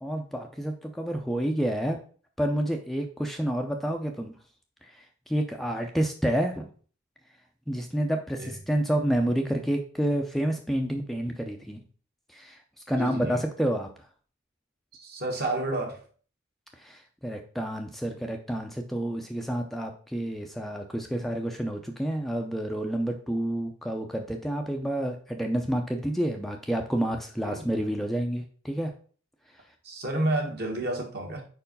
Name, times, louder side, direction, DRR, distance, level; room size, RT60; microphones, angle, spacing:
voice 1, 0.0-2.0 2.4-4.3 4.8-6.7 7.7-11.8 12.3-12.6 12.9-13.9 16.8-28.9, right 1 dB, ahead, 2 dB, 0.5 m, -29 dB
voice 2, 13.0-13.4 14.9-16.0 27.4-27.6 29.8-31.4, right 1 dB, 50° right, 1 dB, 1.6 m, -30 dB
4.9 x 4.6 x 5.3 m, 0.43 s
head